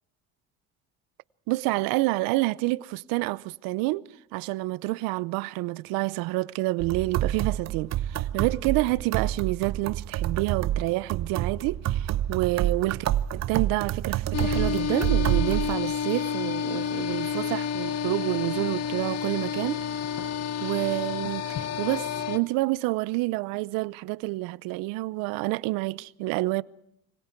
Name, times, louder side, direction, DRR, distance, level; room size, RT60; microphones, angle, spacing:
voice 1, 1.5-13.1 13.3-19.8 20.6-21.5 21.8-26.6, right 21 dB, 75° right, 0.8 m, -28 dB
sound 1, 6.8-15.7, right 12 dB, 50° right, 1.0 m, -28 dB
sound 2, 14.3-22.4, left 8 dB, 45° left, 1.7 m, -30 dB
27.0 x 25.0 x 4.6 m
supercardioid pair, 100°, 34 cm